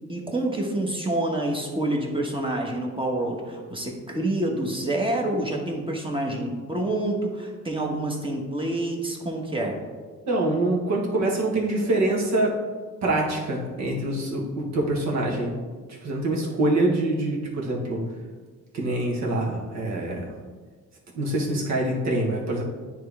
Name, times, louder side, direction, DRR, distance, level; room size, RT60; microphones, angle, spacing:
voice 1, 0.1-9.8, right 1 dB, 15° right, 0 dB, 1.2 m, -27 dB
voice 2, 10.3-12.5 13.0-15.5 15.9-18.0 18.7-20.3 21.1-22.6, right 2 dB, 65° right, -2 dB, 1.6 m, -25 dB
9.4 x 3.4 x 3.5 m, 1.4 s
cardioid pair, 90°, 30 cm